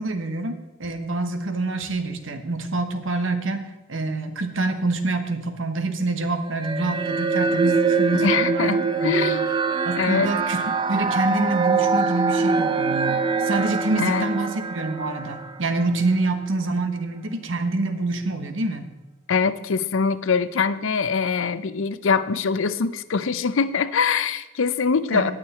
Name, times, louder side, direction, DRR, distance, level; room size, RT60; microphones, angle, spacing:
voice 1, 0.0-9.3 9.8-18.9 25.1-25.3, right 2 dB, 65° right, 8 dB, 1.2 m, -26 dB
sound 1, 6.6-16.1, right 4 dB, 20° right, 0.5 m, -24 dB
voice 2, 8.2-9.5 10.0-10.3 13.9-14.3 19.3-25.3, left 5 dB, 70° left, 14 dB, 0.5 m, -23 dB
18.0 x 6.6 x 4.2 m, 1.1 s
head